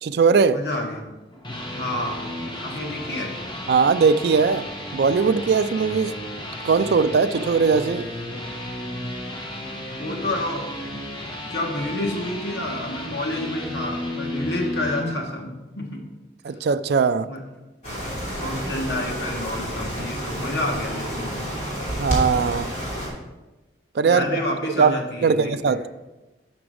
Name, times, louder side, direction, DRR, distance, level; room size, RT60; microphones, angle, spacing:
voice 1, 0.0-0.6 3.7-4.6 4.9-6.1 6.6-8.1 16.4-17.3 22.0-22.7 24.0-24.2 24.8-24.9 25.2-25.8, right 5 dB, 60° right, 11 dB, 0.3 m, -19 dB
voice 2, 0.5-1.1 1.7-2.2 2.6-3.4 10.0-10.7 11.5-16.0 17.3-17.4 18.4-21.4 24.0-25.8, left 1 dB, 70° left, 1 dB, 1.4 m, -29 dB
sound 1, 1.2-15.1, left 1 dB, 25° left, 1.2 m, -33 dB
sound 2, 17.8-23.1, equal, 40° left, 3.0 m, -29 dB
6.1 x 6.0 x 6.3 m, 1.1 s
head